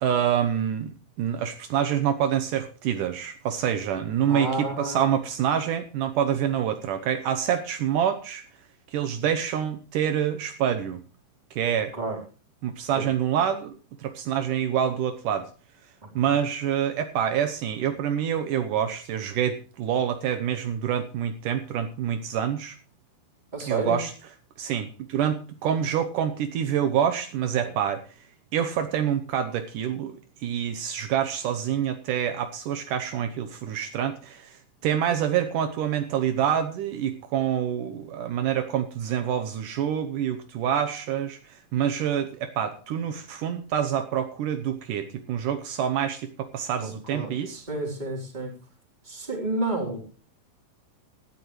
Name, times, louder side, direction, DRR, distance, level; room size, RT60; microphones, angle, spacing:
voice 1, 0.0-8.4 8.9-11.0 11.5-11.9 12.6-15.5 16.2-22.8 23.7-24.1 24.6-28.0 28.5-47.7, right 9 dB, 75° right, 7 dB, 2.4 m, -27 dB
voice 2, 4.3-5.1 11.9-12.2 12.9-13.0 16.0-16.1 23.5-24.0 46.8-47.3 47.7-48.5 49.1-50.0, right 2 dB, 15° right, 1 dB, 3.8 m, -30 dB
17.0 x 13.5 x 3.2 m, 0.36 s
omnidirectional pair, 3.9 m